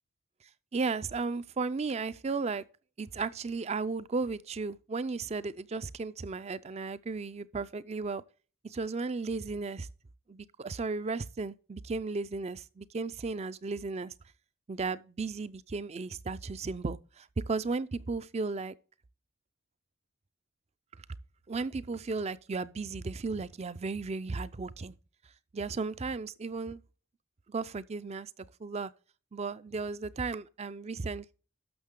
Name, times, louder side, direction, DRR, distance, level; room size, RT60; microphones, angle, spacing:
voice 1, 0.7-2.6 3.0-8.2 8.6-9.9 10.3-14.1 14.7-18.7 21.5-24.9 25.5-26.8 27.5-28.3 28.6-28.9 29.3-31.3, right 4 dB, 30° right, 0.4 m, -35 dB
12.0 x 6.5 x 3.7 m
head